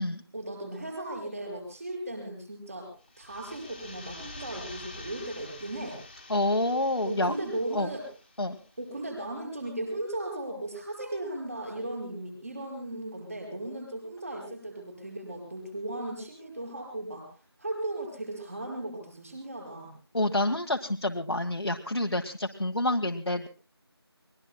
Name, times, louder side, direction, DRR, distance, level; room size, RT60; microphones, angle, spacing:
voice 1, 0.3-2.9 3.2-6.0 7.0-8.1 8.8-17.3 17.6-19.9, right 1 dB, 35° right, 2 dB, 5.6 m, -36 dB
sound 1, 3.0-8.7, left 2 dB, 20° left, 1.9 m, -47 dB
voice 2, 6.3-7.3 7.7-7.9 8.4-8.6 20.1-23.5, left 1 dB, 75° left, 2 dB, 1.4 m, -28 dB
29.5 x 21.5 x 2.2 m, 0.35 s
figure-of-eight pair, 170°, 14 cm